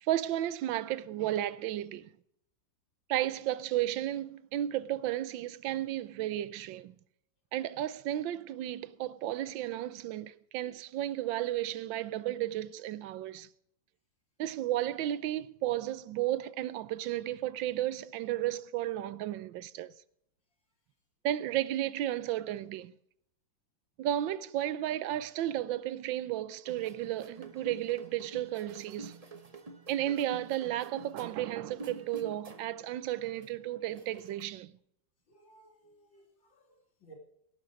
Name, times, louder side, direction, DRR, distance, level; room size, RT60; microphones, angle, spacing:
voice 1, 0.0-2.1 3.1-6.9 7.5-13.5 14.4-19.9 21.2-22.9 24.0-29.2 29.9-34.7, right 13 dB, 90° right, 1.4 m, -33 dB
sound 1, 26.6-32.8 33.1-34.4, right 3 dB, 25° right, 0.9 m, -48 dB
voice 2, 35.3-37.1, right 3 dB, 80° left, 3.7 m, -59 dB
17.5 x 7.8 x 5.2 m
omnidirectional pair, 2.0 m